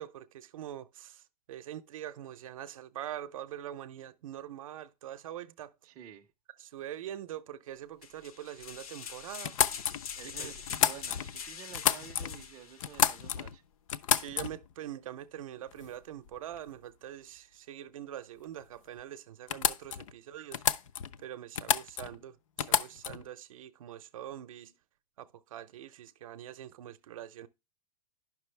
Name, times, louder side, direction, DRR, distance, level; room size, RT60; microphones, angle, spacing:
voice 1, 0.0-5.7 6.6-9.6 10.2-10.5 14.1-20.6 21.2-24.7 25.2-27.5, right 11 dB, 60° right, 0.6 m, -44 dB
voice 2, 5.8-6.3 10.2-13.6, right 10 dB, 15° right, 0.4 m, -50 dB
sound 1, 8.0-13.4, left 7 dB, 75° left, 0.9 m, -44 dB
sound 2, 9.4-11.4 11.7-12.4 12.8-13.6 13.9-14.7 15.7-15.9 16.3-16.7 18.6-18.7 19.0-19.1 19.5-20.1 20.5-21.2 21.6-22.2 22.6-23.3, left 9 dB, 60° left, 0.5 m, -30 dB
9.9 x 6.0 x 3.2 m
supercardioid pair, 175°, 19 cm